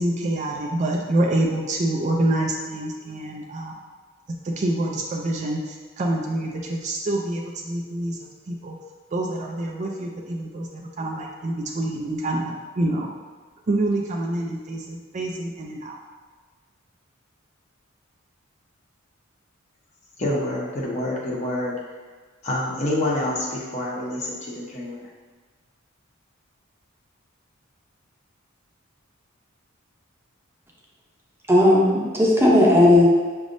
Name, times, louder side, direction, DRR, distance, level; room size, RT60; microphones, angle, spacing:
voice 1, 0.0-3.8 4.4-8.7 9.1-13.1 13.7-16.0, right 1 dB, 35° right, -1 dB, 0.4 m, -26 dB
voice 2, 20.2-21.8 22.4-25.1, left 1 dB, 35° left, -4 dB, 0.9 m, -27 dB
voice 3, 31.5-33.1, left 1 dB, 10° right, -4 dB, 0.7 m, -15 dB
6.1 x 3.3 x 2.6 m, 1.5 s
head